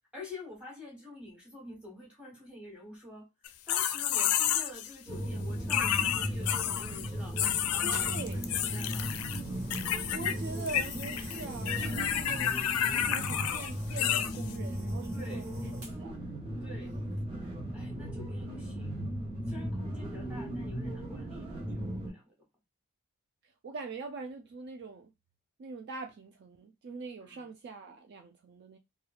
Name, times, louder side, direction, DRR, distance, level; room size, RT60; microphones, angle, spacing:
voice 1, 0.1-9.2 15.1-15.5 16.6-16.9 17.7-19.0 19.5-22.3 27.2-27.5, left 2 dB, 5° right, 1.1 m, -48 dB
sound 1, 3.5-4.9 5.7-7.1 7.4-9.4 9.7-10.3 10.6-14.5, left 10 dB, 75° left, 0.4 m, -30 dB
sound 2, 5.1-22.1, equal, 25° right, 1.1 m, -37 dB
voice 2, 7.8-8.4 10.1-12.5 12.9-15.4 15.7-16.1 20.1-20.5 23.6-25.1 25.6-28.8, right 3 dB, 45° right, 0.3 m, -43 dB
sound 3, 7.9-16.2 17.0-17.2, right 1 dB, 65° right, 1.2 m, -52 dB
3.0 x 2.3 x 2.4 m
head